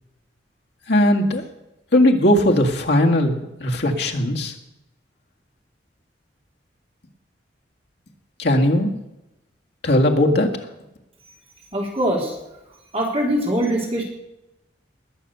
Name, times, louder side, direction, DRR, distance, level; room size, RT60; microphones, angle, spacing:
voice 1, 0.9-1.4 1.9-4.5 8.4-8.9 9.8-10.6, left 1 dB, 65° left, 2 dB, 1.9 m, -18 dB
voice 2, 11.7-12.4 12.9-14.0, right 1 dB, 30° right, -2 dB, 3.7 m, -22 dB
20.5 x 6.9 x 6.8 m, 0.92 s
head